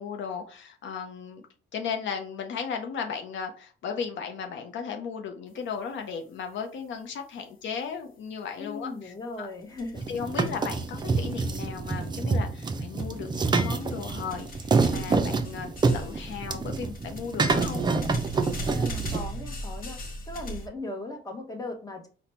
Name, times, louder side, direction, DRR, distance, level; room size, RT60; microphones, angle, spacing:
voice 1, 0.0-1.4 1.7-9.5 10.1-17.9, left 6 dB, 70° left, 0.6 m, -36 dB
voice 2, 8.6-10.0 18.7-20.0 20.3-22.1, left 2 dB, 20° left, 0.9 m, -38 dB
sound 1, 9.6-12.5 13.0-20.7, right 1 dB, 45° left, 0.9 m, -40 dB
sound 2, 9.9-19.2, right 4 dB, 20° right, 0.4 m, -27 dB
4.1 x 2.1 x 4.2 m
cardioid pair, 90°, 20 cm